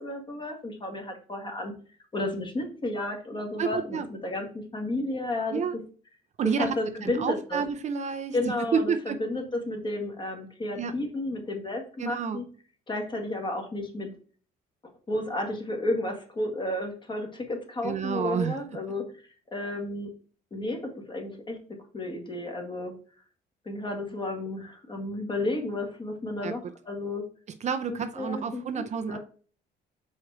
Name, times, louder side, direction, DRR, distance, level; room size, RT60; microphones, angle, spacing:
voice 1, 0.0-1.7 2.1-5.6 6.6-7.6 8.3-12.4 12.9-14.1 15.1-19.0 19.5-20.1 20.5-20.8 21.1-21.6 21.9-22.9 23.7-27.2 27.9-29.2, left 2 dB, 30° left, 2 dB, 1.9 m, -32 dB
voice 2, 3.6-4.1 5.5-5.8 6.4-6.8 7.0-8.4 8.7-9.2 10.8-10.9 12.0-12.4 17.8-18.6 26.4-26.5 27.6-29.2, right 6 dB, 45° right, 8 dB, 0.6 m, -29 dB
4.9 x 4.2 x 4.7 m, 0.41 s
cardioid pair, 110°, 17 cm